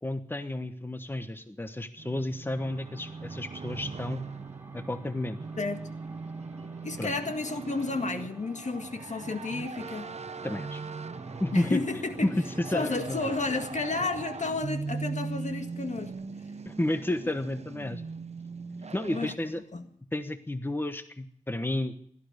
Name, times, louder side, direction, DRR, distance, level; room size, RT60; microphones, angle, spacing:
voice 1, 0.0-4.2 4.7-5.4 7.0-7.1 10.4-10.8 11.4-11.8 12.2-12.3 12.6-13.3 16.6-18.0 18.9-19.6 20.1-21.9, left 1 dB, 15° left, 9 dB, 1.1 m, -31 dB
sound 1, 2.0-19.4, right 4 dB, 55° right, 0.8 m, -40 dB
sound 2, 2.5-14.0, right 1 dB, 15° right, 1.6 m, -53 dB
voice 2, 5.6-5.9 6.8-10.1 11.5-12.4 12.7-16.1 17.2-17.3 19.1-19.9, left 3 dB, 65° left, 6 dB, 1.9 m, -32 dB
sound 3, 11.1-16.1, equal, 85° left, 7.6 m, -54 dB
17.0 x 13.0 x 6.6 m, 0.65 s
wide cardioid pair, 80°, 13 cm